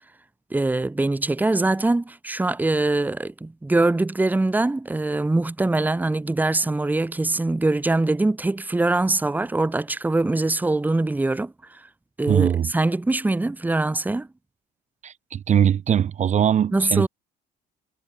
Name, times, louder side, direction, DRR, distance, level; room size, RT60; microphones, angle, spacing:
voice 1, 0.5-11.5 12.2-14.3 16.7-17.1, right 2 dB, 10° right, 1.1 m, -23 dB
voice 2, 12.3-12.7 15.0-17.1, right 9 dB, 45° right, 0.9 m, -21 dB
cardioid pair, 110°, 17 cm